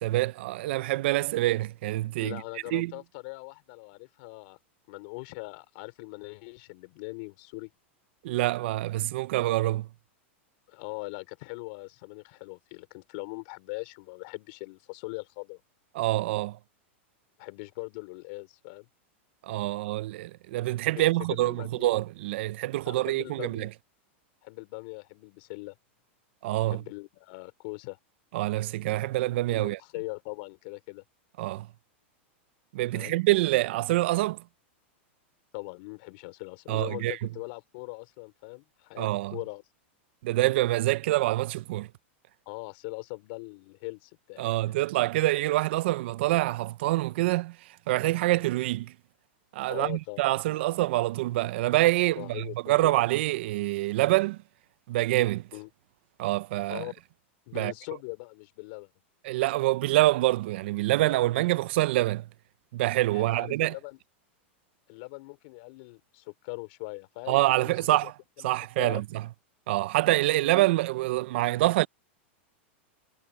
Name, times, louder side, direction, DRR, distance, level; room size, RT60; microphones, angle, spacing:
voice 1, 0.0-2.4 2.7-2.9 8.2-9.9 15.9-16.6 19.4-23.7 26.4-26.8 28.3-29.8 31.4-31.7 32.7-34.4 36.7-37.2 39.0-39.4 40.2-41.9 44.4-47.6 47.9-48.9 49.5-54.4 54.9-55.4 56.2-56.8 57.5-57.7 59.2-62.2 62.7-63.7 67.3-68.1 68.4-69.0 69.7-71.9, right 17 dB, 65° right, 0.6 m, -26 dB
voice 2, 2.2-4.6 4.9-7.7 10.7-15.6 17.4-18.9 21.0-22.0 22.8-23.7 24.4-25.8 26.6-28.0 29.4-31.0 32.9-33.2 35.5-39.6 42.5-44.8 49.7-50.3 52.1-52.9 55.5-55.7 56.7-56.9 57.5-58.9 63.1-64.0 64.9-67.7 68.0-68.1 68.4-69.0 70.3-70.7, left 29 dB, 55° left, 4.1 m, -41 dB
supercardioid pair, 145°, 7 cm